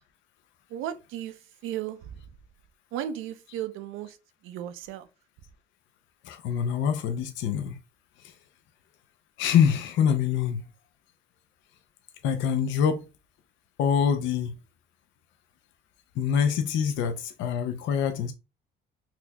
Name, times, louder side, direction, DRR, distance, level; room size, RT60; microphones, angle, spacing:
voice 1, 0.7-2.1 2.9-4.2 4.4-5.1, right 11 dB, 80° right, 0.5 m, -35 dB
voice 2, 6.2-7.8 8.2-8.3 9.4-10.6 12.2-13.0 13.8-14.5 16.2-18.3, left 7 dB, 70° left, 0.5 m, -25 dB
4.1 x 2.8 x 2.2 m
cardioid pair, 140°, 21 cm